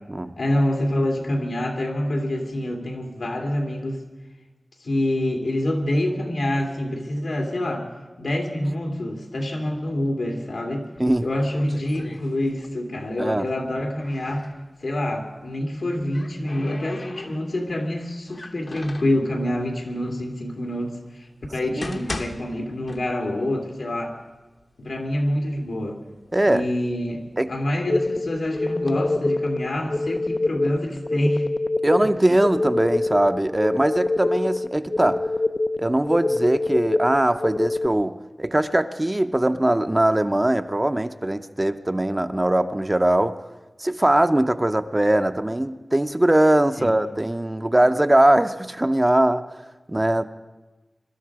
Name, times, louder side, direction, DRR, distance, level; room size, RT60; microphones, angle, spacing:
voice 1, 0.2-4.0 4.8-7.9 8.2-10.9 11.2-14.5 14.8-24.2 24.8-26.0 26.4-27.2 27.5-31.5 46.8-47.0, left 1 dB, 85° left, 2 dB, 2.5 m, -26 dB
sound 1, 11.0-12.9 13.1-14.6 15.7-17.7 18.3-19.2 20.0-20.1 20.7-20.8 21.5-23.5 23.8-23.9 24.6-24.7 25.1-25.7 26.3-27.9 28.6-28.9, left 2 dB, 55° left, 1.1 m, -39 dB
sound 2, 27.9-37.9, left 2 dB, 40° left, 0.5 m, -25 dB
voice 2, 31.8-35.2 35.8-43.4 43.8-49.4 49.9-50.3, right 1 dB, 20° right, 9 dB, 0.6 m, -21 dB
23.5 x 12.5 x 4.8 m, 1.2 s
wide cardioid pair, 80°, 0 cm